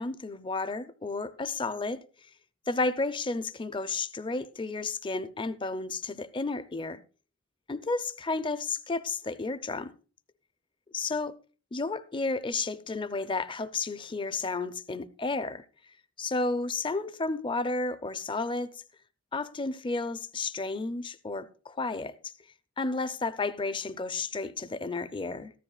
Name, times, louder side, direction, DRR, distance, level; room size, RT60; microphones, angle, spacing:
voice 1, 0.0-2.0 2.7-7.0 7.7-9.9 10.9-11.3 11.7-15.6 16.2-18.8 19.3-22.3 22.8-25.5, left 3 dB, 25° left, 0.6 m, -32 dB
14.5 x 13.0 x 2.4 m
head